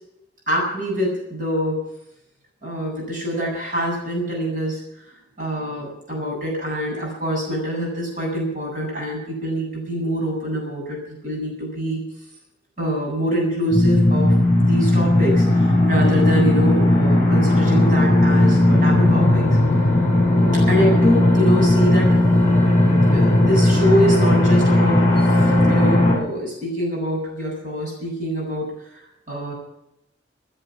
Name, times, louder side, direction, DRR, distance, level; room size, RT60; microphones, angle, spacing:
voice 1, 0.5-1.8 2.6-5.0 5.4-12.0 12.8-19.4 20.7-22.2 23.1-29.5, equal, 45° right, -3 dB, 7.7 m, -25 dB
sound 1, 13.7-26.2, left 1 dB, 15° left, 6.6 m, -16 dB
17.0 x 10.0 x 7.3 m, 0.83 s
head